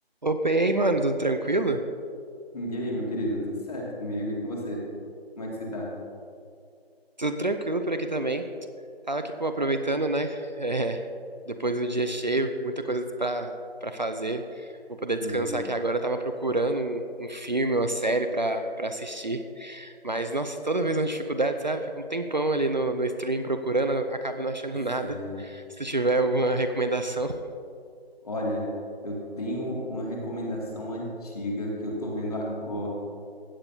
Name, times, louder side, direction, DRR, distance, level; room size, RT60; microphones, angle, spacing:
voice 1, 0.2-1.8 7.2-8.5 9.1-11.1 11.5-27.4, right 2 dB, 45° right, 7 dB, 0.5 m, -27 dB
voice 2, 2.5-4.8 5.4-5.9 15.2-15.5 25.0-25.4 28.2-28.6 29.0-32.9, equal, 35° left, -3 dB, 2.3 m, -32 dB
16.0 x 9.9 x 2.8 m, 2.4 s
figure-of-eight pair, 165°, 31 cm